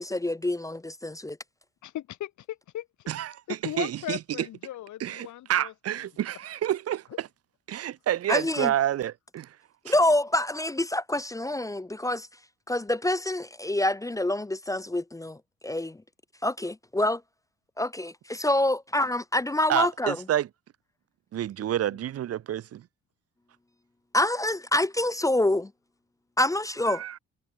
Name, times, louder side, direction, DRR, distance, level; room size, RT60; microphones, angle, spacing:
voice 1, 0.0-1.4 8.3-8.7 9.8-12.3 12.7-16.0 16.4-17.2 17.8-20.2 24.1-25.7 26.4-27.0, left 1 dB, 10° left, 0.6 m, -26 dB
voice 2, 1.8-2.9 3.5-5.7 7.1-7.2, left 13 dB, 75° left, 1.5 m, -37 dB
voice 3, 3.1-4.5 5.0-7.3 7.7-9.6 9.9-10.0 19.7-20.5 21.3-22.9 26.9-27.2, right 11 dB, 55° right, 0.7 m, -29 dB
cardioid pair, 90°, 30 cm